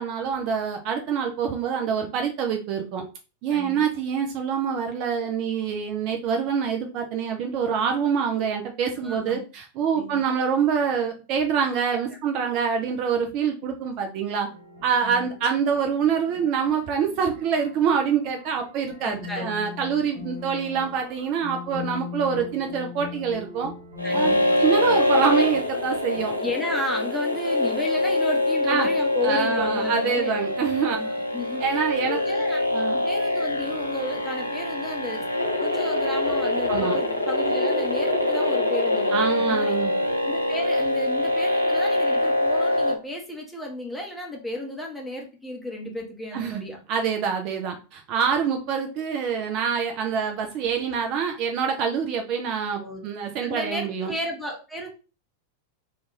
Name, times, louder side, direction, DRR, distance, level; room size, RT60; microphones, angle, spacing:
voice 1, 0.0-3.0 3.4-14.5 14.8-23.7 24.1-24.3 24.6-26.3 28.7-28.9 29.2-31.0 31.6-32.2 32.7-33.0 36.7-37.0 39.1-39.9 46.3-46.6 46.9-54.1, right 7 dB, 40° right, 4 dB, 0.4 m, -26 dB
voice 2, 3.5-3.8 9.0-9.4 9.9-10.2 11.9-12.0 15.0-15.3 19.0-19.5 20.2-20.3 24.0-24.4 26.4-30.6 30.9-32.6 33.0-35.3 35.6-39.8 40.2-46.8 52.8-53.0 53.4-54.9, left 1 dB, 5° left, -1 dB, 0.8 m, -33 dB
sound 1, 14.5-26.2, left 6 dB, 70° right, 1.0 m, -41 dB
sound 2, 24.0-42.9, left 1 dB, 90° left, 0.4 m, -24 dB
2.4 x 2.3 x 3.1 m, 0.33 s
figure-of-eight pair, 90°, 0 cm